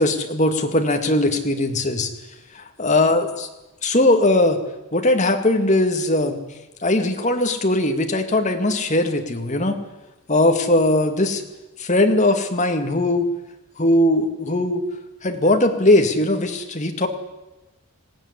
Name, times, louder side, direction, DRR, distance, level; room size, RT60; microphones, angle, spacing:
voice 1, 0.0-2.1 2.8-3.5 3.8-4.6 4.9-6.4 6.8-9.7 10.3-11.4 11.8-13.3 13.8-14.8 15.2-17.1, left 1 dB, 35° left, 5 dB, 2.2 m, -19 dB
20.0 x 16.5 x 9.9 m, 1.0 s
head